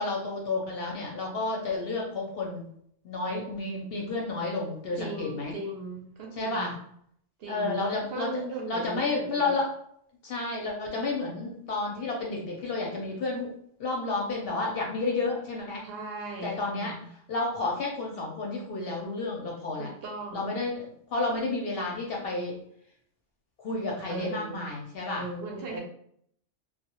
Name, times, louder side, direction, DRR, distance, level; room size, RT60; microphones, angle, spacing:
voice 1, 0.0-2.7 3.0-5.5 6.4-6.7 7.5-8.4 8.7-9.7 10.2-13.5 13.8-15.8 16.4-16.9 17.3-19.9 20.3-22.6 23.6-25.2 25.7-25.8, left 3 dB, 60° left, -1 dB, 0.7 m, -31 dB
voice 2, 5.0-6.9 7.4-9.5 15.8-17.0 19.8-20.6 24.1-24.7 25.1-25.8, right 2 dB, 65° right, 1 dB, 0.7 m, -38 dB
2.1 x 2.0 x 2.8 m, 0.66 s
omnidirectional pair, 1.3 m